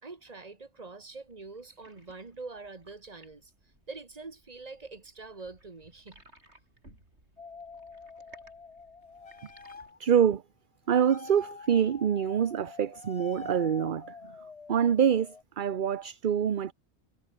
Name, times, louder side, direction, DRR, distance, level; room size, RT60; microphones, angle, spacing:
voice 1, 0.0-3.5 3.9-6.2, right 3 dB, 35° right, 1.8 m, -44 dB
sound 1, 1.1-9.9, right 1 dB, 80° right, 8.5 m, -60 dB
sound 2, 7.4-10.0 10.9-15.4, left 4 dB, 35° left, 1.0 m, -46 dB
voice 2, 10.0-10.4 10.9-14.2 14.7-16.7, right 8 dB, 50° right, 0.9 m, -25 dB
omnidirectional pair, 1.1 m